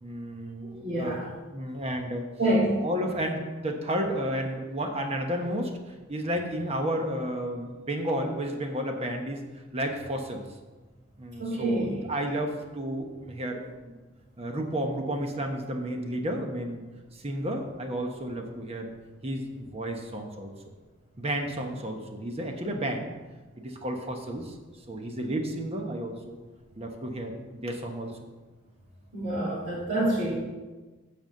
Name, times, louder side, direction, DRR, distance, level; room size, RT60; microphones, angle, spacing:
voice 1, 0.0-1.2 1.5-2.2 2.8-5.7 6.1-9.4 9.7-10.4 11.2-14.0 14.4-16.8 17.2-18.9 19.2-20.5 21.2-23.1 23.6-24.5 24.9-26.4 26.8-28.1, right 1 dB, 30° right, 3 dB, 1.0 m, -32 dB
voice 2, 0.7-1.3 2.4-2.8 11.4-12.0 29.1-30.3, right 1 dB, 50° right, -8 dB, 2.5 m, -27 dB
8.1 x 5.3 x 7.6 m, 1.3 s
head